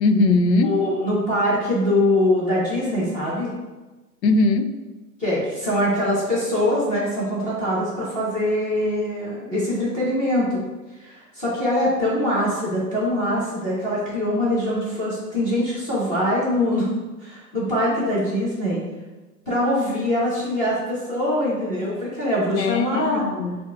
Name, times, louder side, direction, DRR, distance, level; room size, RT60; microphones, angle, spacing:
voice 1, 0.0-0.8 4.2-4.8 22.6-23.6, left 3 dB, 85° left, 8 dB, 0.6 m, -20 dB
voice 2, 0.6-3.5 5.2-10.6 10.9-16.9 17.2-18.8 19.5-23.3, left 1 dB, 15° left, -7 dB, 1.0 m, -23 dB
7.6 x 2.6 x 2.3 m, 1.2 s
hypercardioid pair, 155°, 49 cm